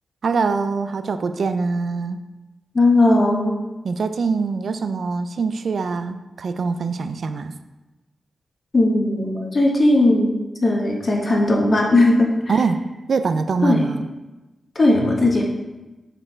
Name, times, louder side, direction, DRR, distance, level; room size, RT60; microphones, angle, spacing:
voice 1, 0.2-2.2 3.8-7.5 12.5-12.8 13.1-14.1, right 4 dB, 65° right, 9 dB, 0.4 m, -23 dB
voice 2, 2.7-3.6 8.7-10.3 10.6-12.3 13.6-13.8 14.7-15.4, left 2 dB, 40° left, 0 dB, 1.1 m, -17 dB
6.2 x 4.5 x 4.4 m, 1.1 s
wide cardioid pair, 115°, 0 cm